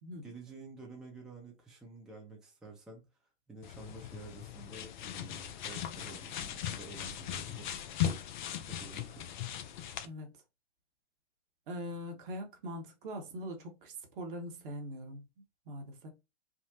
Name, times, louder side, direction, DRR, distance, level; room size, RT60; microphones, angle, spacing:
voice 1, 0.2-7.7 8.6-9.5, right 3 dB, ahead, 0.7 m, -50 dB
sound 1, 3.6-10.1, left 10 dB, 45° left, 0.5 m, -38 dB
voice 2, 11.7-15.2 15.7-16.1, equal, 50° right, 1.0 m, -42 dB
3.6 x 2.1 x 2.7 m
figure-of-eight pair, 105°, 35 cm